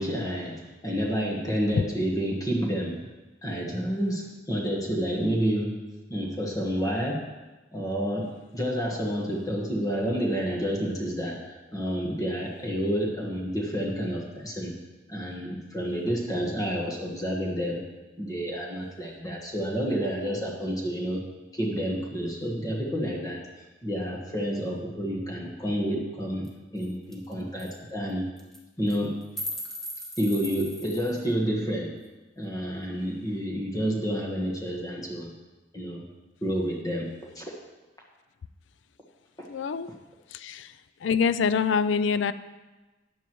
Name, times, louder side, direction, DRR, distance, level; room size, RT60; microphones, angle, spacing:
voice 1, 0.0-3.0 3.4-5.8 6.1-7.2 7.7-14.8 15.1-17.8 18.2-21.2 21.5-23.4 23.8-26.5 26.7-28.3 28.8-29.2 30.2-32.0 32.4-35.3 35.7-36.0 36.4-37.4 39.9-40.0, equal, 20° left, -2 dB, 1.4 m, -29 dB
sound 1, 26.4-26.5 26.8-26.9 27.1-27.3 27.6-27.7 28.4-28.6 28.9-31.2, equal, ahead, 1.3 m, -37 dB
voice 2, 39.5-39.9 40.3-40.7 41.0-42.3, left 6 dB, 75° left, 13 dB, 0.4 m, -25 dB
14.0 x 9.4 x 3.1 m, 1.2 s
head